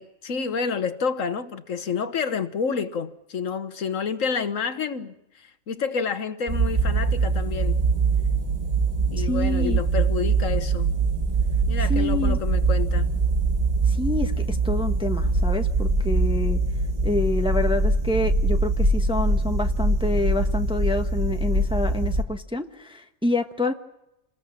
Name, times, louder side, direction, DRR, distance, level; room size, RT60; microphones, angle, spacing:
voice 1, 0.0-7.8 9.1-10.9 11.7-13.1, left 6 dB, 70° left, 1.5 m, -29 dB
sound 1, 6.5-22.2, right 3 dB, 30° right, 1.4 m, -23 dB
voice 2, 9.2-9.8 11.9-12.4 13.9-16.6 17.0-23.7, left 1 dB, 5° right, 1.1 m, -27 dB
29.0 x 20.0 x 7.4 m
omnidirectional pair, 1.4 m